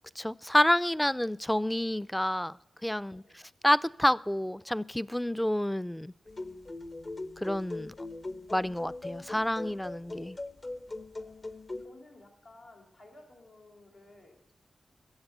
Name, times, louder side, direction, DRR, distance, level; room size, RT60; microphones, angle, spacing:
voice 1, 0.2-2.5 2.8-3.2 3.6-6.1 7.4-7.9 8.5-10.4, left 1 dB, 10° left, 19 dB, 0.4 m, -28 dB
voice 2, 3.0-3.4 11.0-14.5, left 2 dB, 90° left, -2 dB, 3.7 m, -56 dB
sound 1, 6.3-11.9, left 2 dB, 50° left, 1.0 m, -41 dB
16.0 x 7.3 x 8.1 m, 0.84 s
cardioid pair, 45°, 0 cm